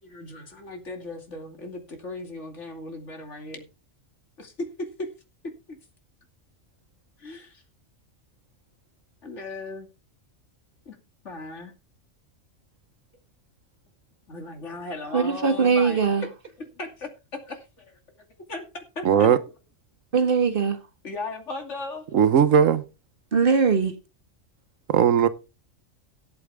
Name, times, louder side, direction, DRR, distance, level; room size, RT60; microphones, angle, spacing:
voice 1, 0.0-3.6 4.4-5.1 5.4-5.8 7.2-7.6 9.2-9.9 10.8-11.0 11.2-11.7 14.3-16.0 16.6-19.3 21.0-22.1, left 2 dB, 65° left, 3.0 m, -37 dB
voice 2, 15.1-16.2 20.1-20.8 23.3-23.9, right 5 dB, 45° right, 1.7 m, -21 dB
voice 3, 19.0-19.4 22.1-22.8 24.9-25.3, right 8 dB, 90° right, 1.3 m, -18 dB
17.0 x 8.6 x 3.6 m
omnidirectional pair, 1.3 m